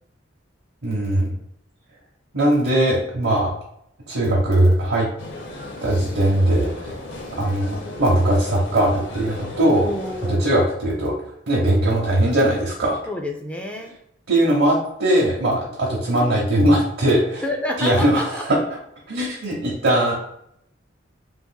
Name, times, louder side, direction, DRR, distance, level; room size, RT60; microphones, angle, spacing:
voice 1, 0.8-1.3 2.3-3.5 4.1-5.1 5.8-6.7 7.4-9.8 10.3-11.1 11.5-13.0 14.3-17.4 17.8-18.6 19.1-20.1, right 1 dB, 85° right, -5 dB, 0.8 m, -19 dB
sound 1, 5.2-10.3, left 1 dB, 75° left, 0.7 m, -35 dB
voice 2, 9.8-10.5 13.1-14.0 17.4-18.4, left 1 dB, 5° left, 2 dB, 0.3 m, -28 dB
3.5 x 3.0 x 2.2 m, 0.75 s
head